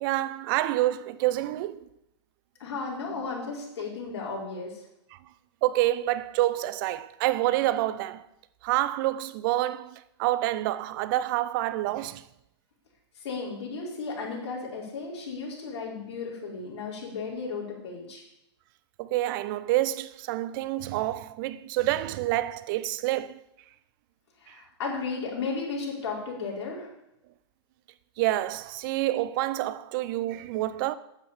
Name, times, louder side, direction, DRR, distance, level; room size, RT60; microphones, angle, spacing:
voice 1, 0.0-1.8 5.6-8.2 8.6-9.9 10.2-12.2 19.0-23.4 28.2-30.9, right 15 dB, 50° right, 0.7 m, -27 dB
voice 2, 2.6-4.8 13.2-18.2 24.4-26.9, left 4 dB, 70° left, 4.8 m, -34 dB
9.1 x 8.1 x 7.2 m
hypercardioid pair, 125°, 15 cm